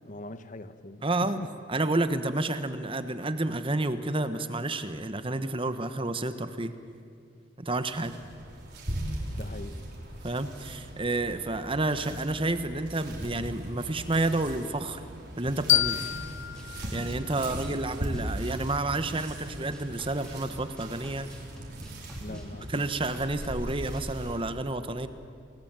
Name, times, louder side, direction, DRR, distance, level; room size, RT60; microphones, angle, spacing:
voice 1, 0.0-1.5 9.3-9.9 22.2-22.9, left 1 dB, 40° left, 11 dB, 1.1 m, -41 dB
voice 2, 1.0-1.4 1.7-6.7 7.6-8.2 10.2-15.0 15.4-16.0 16.9-21.3 22.3-22.4 22.7-25.1, right 2 dB, 25° right, 10 dB, 1.2 m, -30 dB
sound 1, 7.9-24.5, right 1 dB, 55° right, 5.4 m, -39 dB
sound 2, 15.7-18.5, left 13 dB, 65° left, 0.7 m, -30 dB
sound 3, 15.8-24.1, equal, 5° left, 3.4 m, -48 dB
29.5 x 20.5 x 9.0 m, 2.3 s
head